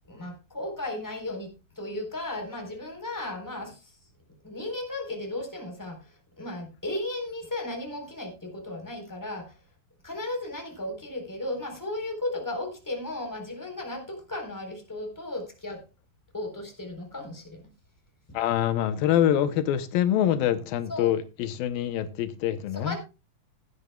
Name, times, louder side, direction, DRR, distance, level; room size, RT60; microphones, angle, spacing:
voice 1, 0.1-4.0 4.4-9.6 10.0-15.8 16.3-17.7 18.3-18.4 20.9-21.1 22.7-23.0, left 1 dB, 5° left, 3.7 m, -35 dB
voice 2, 18.3-23.0, left 11 dB, 85° left, 2.7 m, -25 dB
16.0 x 11.0 x 2.3 m
omnidirectional pair, 4.0 m